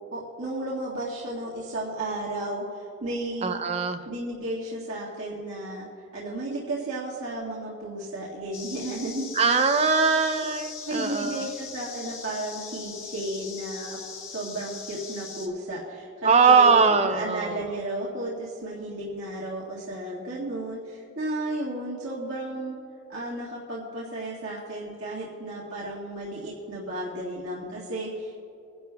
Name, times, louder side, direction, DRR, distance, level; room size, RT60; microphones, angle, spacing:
voice 1, 0.1-3.6 4.1-9.7 10.8-14.0 14.3-22.8 23.1-28.3, right 1 dB, 85° right, -6 dB, 1.8 m, -33 dB
voice 2, 3.4-4.0 9.4-11.5 16.2-17.6, right 5 dB, 30° right, 7 dB, 0.5 m, -21 dB
sound 1, 8.5-15.5, left 5 dB, 70° left, 1.5 m, -41 dB
22.5 x 11.0 x 2.3 m, 2.8 s
head